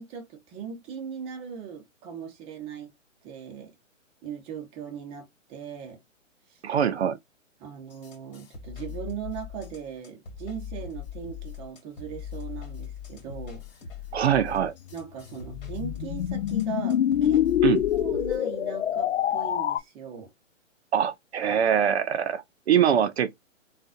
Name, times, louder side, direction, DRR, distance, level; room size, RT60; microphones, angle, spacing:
voice 1, 0.0-2.9 3.2-3.7 4.2-6.0 6.5-6.6 7.6-13.6 14.9-17.4 17.9-20.3, right 7 dB, 15° right, 0.7 m, -39 dB
voice 2, 6.6-7.2 14.1-14.7 17.6-17.8 20.9-23.4, right 9 dB, 55° right, 0.5 m, -23 dB
sound 1, 7.9-18.4, left 8 dB, 45° left, 2.2 m, -40 dB
sound 2, 14.9-19.8, left 11 dB, 60° left, 0.5 m, -25 dB
3.7 x 2.4 x 2.4 m
hypercardioid pair, 135°, 38 cm